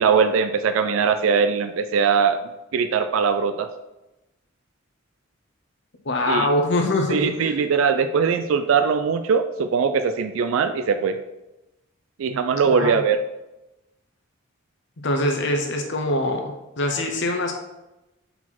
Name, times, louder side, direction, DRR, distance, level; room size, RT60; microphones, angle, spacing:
voice 1, 0.0-2.4 2.7-3.7 6.3-6.5 7.1-11.2 12.2-13.2, right 6 dB, 75° right, 9 dB, 0.4 m, -21 dB
voice 2, 6.0-7.5 12.6-12.9 15.0-17.5, left 1 dB, 60° left, 3 dB, 0.7 m, -23 dB
4.5 x 4.1 x 5.7 m, 0.98 s
head